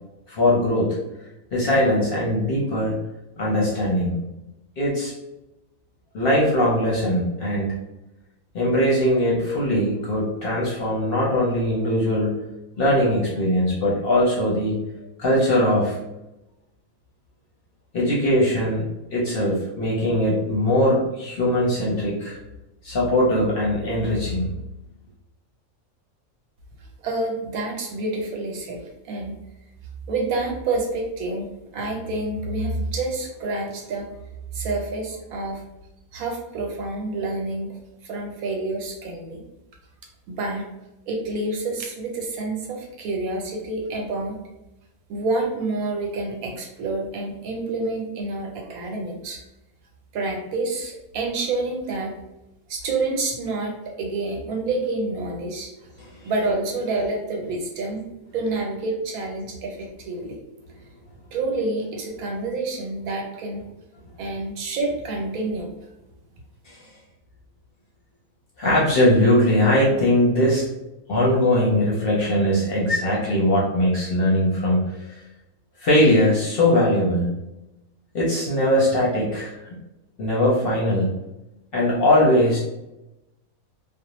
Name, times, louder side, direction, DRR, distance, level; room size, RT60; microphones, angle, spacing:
voice 1, 0.3-1.0 1.5-2.9 3.4-4.2 4.8-5.1 6.1-7.7 8.5-12.4 12.8-14.8 15.2-16.0 17.9-18.9 19.1-22.4 22.8-24.5 56.0-56.3 66.7-66.8 68.6-70.7 71.1-74.8 75.1-75.2 75.8-77.4 78.1-79.5 80.2-81.1 81.7-82.6, left 1 dB, 55° left, -5 dB, 0.7 m, -20 dB
voice 2, 27.0-29.4 30.1-34.1 34.5-35.6 36.1-37.7 38.0-39.4 40.3-40.7 41.1-44.4 45.1-49.4 50.1-52.1 52.7-55.7 56.2-58.0 58.3-60.4 61.3-63.6 64.2-65.7, right 2 dB, 85° right, 1 dB, 1.1 m, -28 dB
2.5 x 2.0 x 2.9 m, 0.94 s
omnidirectional pair, 1.5 m